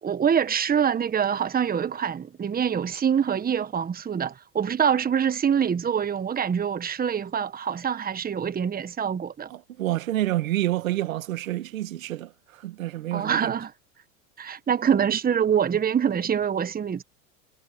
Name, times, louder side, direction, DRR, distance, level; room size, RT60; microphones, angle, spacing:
voice 1, 0.0-9.5 13.1-13.7 14.4-17.0, right 8 dB, 20° right, 1.5 m, -25 dB
voice 2, 9.5-13.5, right 15 dB, 80° right, 2.3 m, -28 dB
hypercardioid pair, 90°, 40 cm